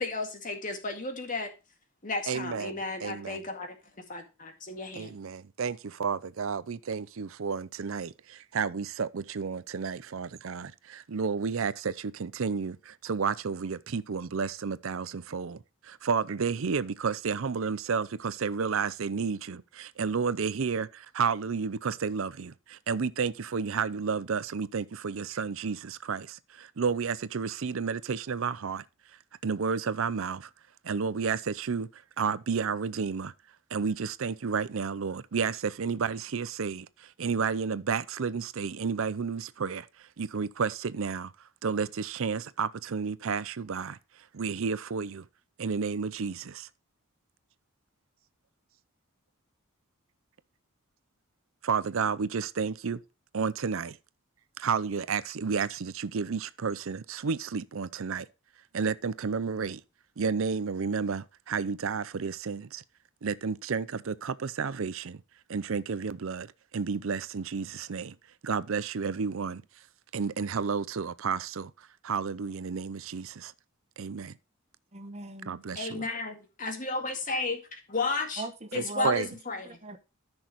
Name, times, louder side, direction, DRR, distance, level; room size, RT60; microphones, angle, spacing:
voice 1, 0.0-1.5 2.0-5.2 75.8-78.4 78.7-79.8, left 3 dB, 40° left, 2.1 m, -33 dB
voice 2, 2.3-3.4 4.9-15.6 15.8-28.8 29.4-30.5 30.8-33.3 33.7-36.9 37.2-39.9 40.2-41.3 41.6-44.0 44.3-45.2 45.6-46.7 51.6-53.0 53.3-54.0 54.6-58.3 58.7-59.8 60.2-62.8 63.2-65.2 65.5-66.5 66.7-68.1 68.4-69.6 70.1-71.7 72.0-73.5 74.0-74.3 75.5-76.0 78.7-79.3, right 5 dB, 65° right, 0.5 m, -31 dB
voice 3, 74.9-75.5 78.4-79.4 79.6-80.0, right 3 dB, 30° right, 1.1 m, -39 dB
14.0 x 6.2 x 3.0 m
head